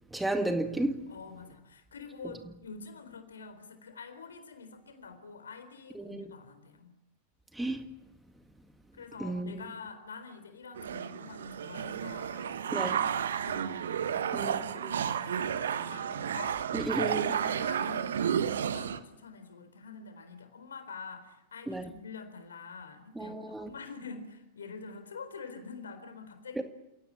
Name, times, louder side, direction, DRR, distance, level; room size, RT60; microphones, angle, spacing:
voice 1, 0.1-1.1 6.0-6.3 7.5-7.9 9.2-9.6 12.7-13.0 14.3-14.6 16.7-17.4 21.7-21.9 23.2-23.7 26.6-26.7, right 2 dB, 5° right, 1.9 m, -33 dB
voice 2, 1.1-7.0 8.9-16.8 17.2-26.6, left 5 dB, 70° left, 4.0 m, -46 dB
sound 1, 10.8-19.0, right 8 dB, 65° right, 1.3 m, -32 dB
29.0 x 17.5 x 8.7 m
figure-of-eight pair, 90°, 0 cm